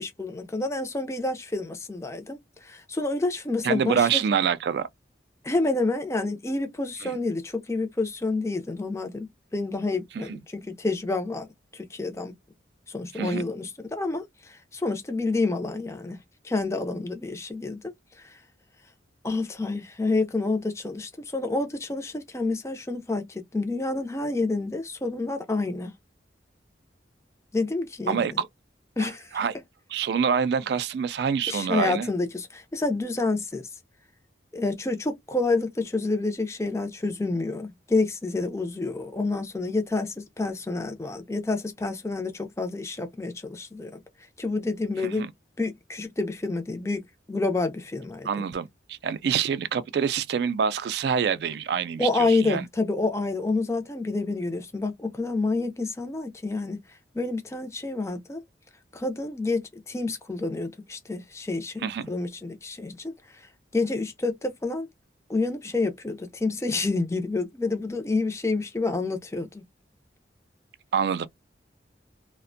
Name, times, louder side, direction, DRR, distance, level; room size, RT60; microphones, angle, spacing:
voice 1, 0.0-4.2 5.4-10.4 10.7-12.3 12.9-16.2 16.4-17.9 18.2-18.4 19.2-25.9 27.5-28.3 29.0-29.3 31.5-33.7 34.5-44.0 44.4-45.3 45.6-47.0 47.3-48.4 52.0-56.8 57.1-58.4 58.9-63.1 63.7-64.9 65.3-69.6, left 3 dB, 15° left, 0.4 m, -28 dB
voice 2, 3.6-4.9 7.0-7.2 10.1-10.4 13.1-13.5 28.1-28.5 29.0-29.5 29.9-32.1 45.0-45.3 48.2-52.6 61.8-62.1 70.9-71.3, right 7 dB, 65° right, 0.3 m, -26 dB
2.4 x 2.1 x 2.5 m
head